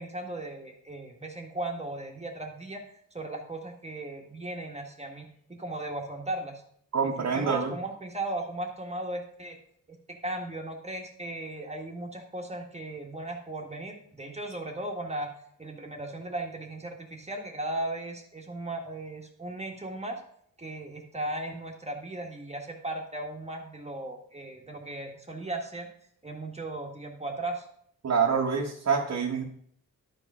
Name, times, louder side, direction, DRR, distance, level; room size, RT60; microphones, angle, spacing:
voice 1, 0.0-2.8 3.1-6.6 7.0-9.6 9.9-15.3 15.6-20.2 20.6-25.9 26.2-27.6, right 2 dB, 20° right, 1 dB, 1.8 m, -37 dB
voice 2, 6.9-7.7 28.0-29.4, right 6 dB, 50° right, -2 dB, 1.5 m, -26 dB
12.0 x 5.2 x 5.6 m, 0.66 s
wide cardioid pair, 115°, 33 cm